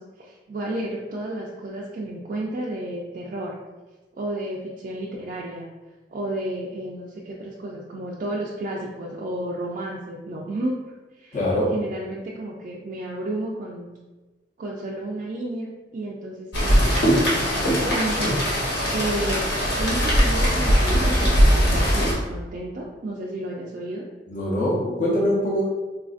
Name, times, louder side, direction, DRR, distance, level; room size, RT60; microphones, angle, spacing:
voice 1, 0.0-3.5 4.1-5.7 6.1-10.7 11.2-11.4 11.7-13.9 14.6-19.4 19.8-24.1, right 1 dB, 50° right, -4 dB, 0.3 m, -32 dB
voice 2, 11.3-11.7 24.3-25.6, equal, 45° left, -6 dB, 0.7 m, -23 dB
Rain, 16.5-22.1, equal, 70° left, 1.0 m, -20 dB
3.8 x 2.4 x 2.4 m, 1.2 s
head